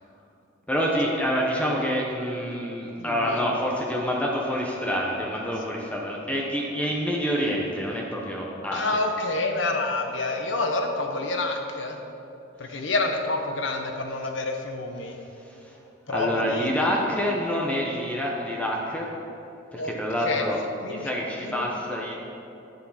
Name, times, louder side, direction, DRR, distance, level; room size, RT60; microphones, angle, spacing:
voice 1, 0.7-9.0 15.5-15.8 16.1-19.1 19.7-20.6 20.9-22.2, equal, 5° left, -2 dB, 0.8 m, -27 dB
voice 2, 3.0-3.4 8.7-12.0 12.6-15.2 16.1-16.9 19.8-19.9 20.2-20.4 20.8-21.1 21.4-21.7, left 2 dB, 70° left, 4 dB, 0.9 m, -28 dB
9.9 x 6.6 x 5.6 m, 2.8 s
head